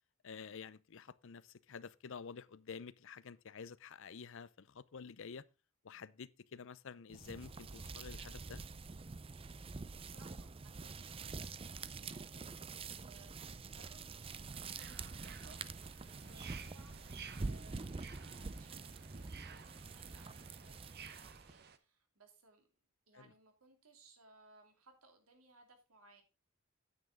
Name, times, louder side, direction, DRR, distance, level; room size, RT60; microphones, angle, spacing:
voice 1, 0.2-5.5 5.8-8.6 23.1-23.3, left 6 dB, 65° left, 0.6 m, -50 dB
sound 1, 7.1-21.6, right 4 dB, 25° right, 0.5 m, -46 dB
voice 2, 10.0-22.7 23.1-26.2, right 2 dB, 85° right, 3.0 m, -65 dB
sound 2, 14.5-21.8, right 7 dB, 50° right, 1.0 m, -55 dB
9.4 x 9.4 x 3.7 m
head